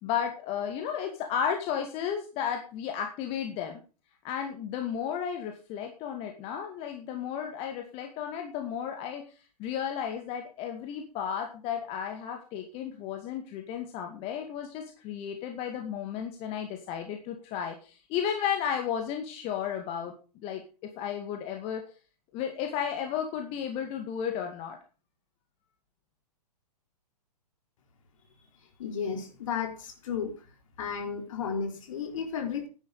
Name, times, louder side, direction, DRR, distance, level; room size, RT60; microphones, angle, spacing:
voice 1, 0.0-3.8 4.2-21.8 22.3-24.8, left 8 dB, 30° left, 4 dB, 2.2 m, -33 dB
voice 2, 28.8-30.3 30.8-32.7, left 6 dB, 50° left, 5 dB, 4.0 m, -33 dB
11.5 x 10.5 x 4.9 m, 0.36 s
figure-of-eight pair, 120°, 21 cm